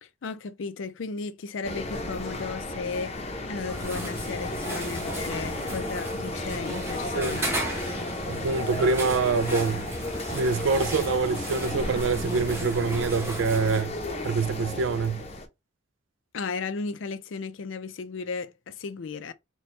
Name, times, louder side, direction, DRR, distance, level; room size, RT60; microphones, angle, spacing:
voice 1, 0.0-3.2 3.5-7.7 16.3-19.3, left 4 dB, 80° left, 0.5 m, -35 dB
sound 1, 1.6-15.5, left 1 dB, 30° left, 0.6 m, -34 dB
sound 2, 3.7-13.8, right 1 dB, 15° right, 0.9 m, -35 dB
voice 2, 8.3-9.9 10.3-14.0 14.2-15.2, right 4 dB, 75° right, 0.4 m, -25 dB
4.2 x 2.2 x 3.2 m
head